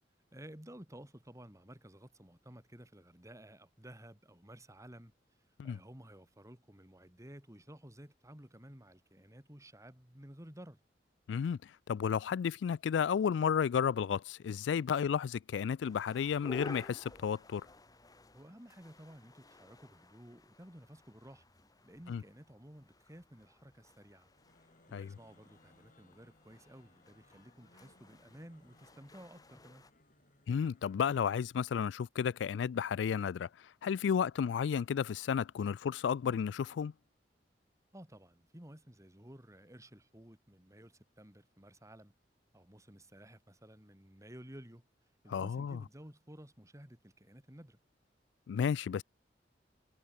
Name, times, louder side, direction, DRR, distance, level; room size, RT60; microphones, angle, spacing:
voice 1, 0.3-5.1 5.6-10.8 18.3-21.4 21.8-24.3 24.9-29.8 37.9-42.1 42.5-44.8 45.2-47.8, right 1 dB, 20° right, 3.2 m, -54 dB
voice 2, 11.3-11.6 11.9-17.6 22.1-22.2 24.9-25.1 30.5-33.5 33.8-36.9 45.3-45.8 48.5-49.0, left 7 dB, 90° left, 0.3 m, -32 dB
sound 1, 15.8-29.9, left 2 dB, 20° left, 1.7 m, -55 dB
sound 2, 24.2-31.6, left 2 dB, 50° left, 6.1 m, -67 dB
head